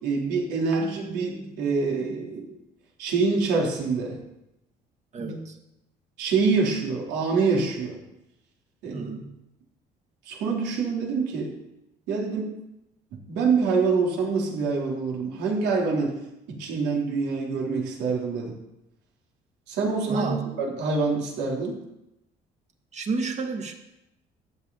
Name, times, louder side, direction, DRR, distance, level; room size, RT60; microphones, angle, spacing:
voice 1, 0.0-2.6 3.0-4.2 5.2-5.4 6.2-8.0 8.8-9.1 10.3-11.5 12.1-12.5 13.3-16.2 16.5-18.5 19.7-20.3 20.6-21.8, right 4 dB, 90° right, -1 dB, 3.4 m, -26 dB
voice 2, 5.1-5.6 8.9-9.4 20.1-20.5 22.9-23.7, right 4 dB, 40° right, 4 dB, 1.9 m, -30 dB
14.5 x 10.5 x 4.1 m, 0.89 s
cardioid pair, 110°, 17 cm